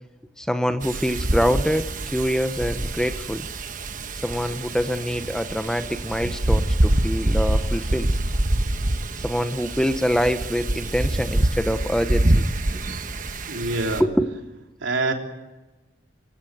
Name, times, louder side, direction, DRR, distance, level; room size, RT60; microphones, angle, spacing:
voice 1, 0.4-3.5 4.2-8.1 9.2-12.4 14.0-14.3, equal, 5° left, 9 dB, 0.9 m, -25 dB
Wind, 0.8-14.0, right 1 dB, 45° right, 1.2 m, -25 dB
voice 2, 13.5-14.0 14.8-15.1, right 2 dB, 85° right, 2 dB, 3.5 m, -25 dB
25.5 x 16.0 x 9.3 m, 1.1 s
head